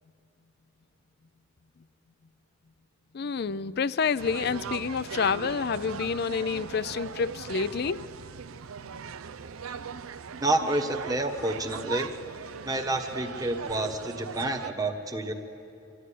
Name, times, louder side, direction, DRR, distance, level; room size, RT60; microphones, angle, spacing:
voice 1, 3.1-8.1, left 5 dB, 50° left, 17 dB, 0.4 m, -28 dB
sound 1, 4.2-14.7, right 6 dB, 90° right, 0.6 m, -39 dB
voice 2, 10.4-12.1 12.6-15.3, right 2 dB, 15° right, 5 dB, 1.2 m, -29 dB
25.5 x 13.0 x 9.9 m, 2.7 s
head